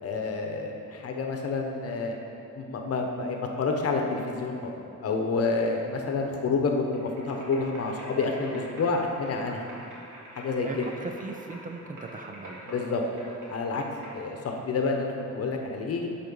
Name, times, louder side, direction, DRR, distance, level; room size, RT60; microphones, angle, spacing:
voice 1, 0.0-2.2 2.5-4.7 5.0-9.6 10.3-10.9 12.7-13.0 13.5-13.8 14.1-16.1, left 4 dB, 50° left, 2 dB, 0.9 m, -29 dB
sound 1, 6.9-14.1, right 1 dB, 75° right, 2.4 m, -45 dB
voice 2, 10.6-12.6, right 3 dB, 25° right, 3 dB, 0.4 m, -38 dB
12.0 x 4.5 x 5.4 m, 2.7 s
wide cardioid pair, 175°, 32 cm